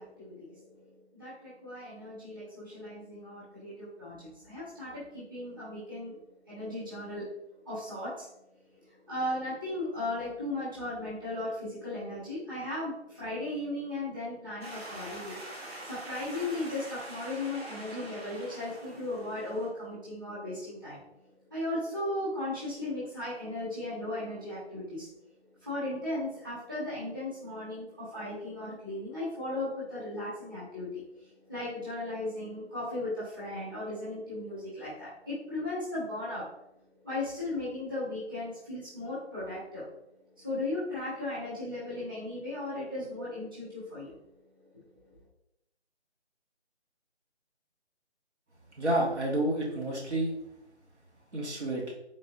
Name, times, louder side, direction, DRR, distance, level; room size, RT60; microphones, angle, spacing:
voice 1, 0.0-6.2 6.5-7.3 7.6-8.3 8.7-15.4 15.8-21.0 21.5-25.1 25.5-36.5 37.0-39.9 40.3-44.2 44.7-45.2, left 2 dB, 20° right, -12 dB, 1.1 m, -36 dB
sound 1, 14.6-19.7, right 1 dB, 60° right, 1.3 m, -44 dB
voice 2, 48.8-50.3 51.3-51.9, right 1 dB, 75° right, -3 dB, 1.4 m, -29 dB
3.9 x 3.2 x 2.6 m, 0.81 s
figure-of-eight pair, 175°, 34 cm